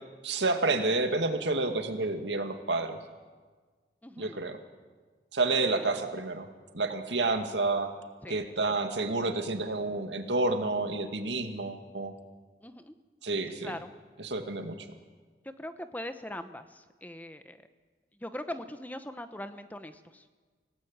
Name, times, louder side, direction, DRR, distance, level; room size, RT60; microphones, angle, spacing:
voice 1, 0.2-3.0 4.2-4.6 5.3-6.5 6.7-7.9 8.3-12.1 13.2-13.7 14.2-14.7, right 3 dB, 85° right, 6 dB, 2.2 m, -29 dB
voice 2, 4.0-4.4 8.2-8.4 12.6-12.9 13.6-13.9 15.6-17.6 18.2-20.3, left 1 dB, 10° left, 9 dB, 0.9 m, -41 dB
26.0 x 17.5 x 8.9 m, 1.4 s
head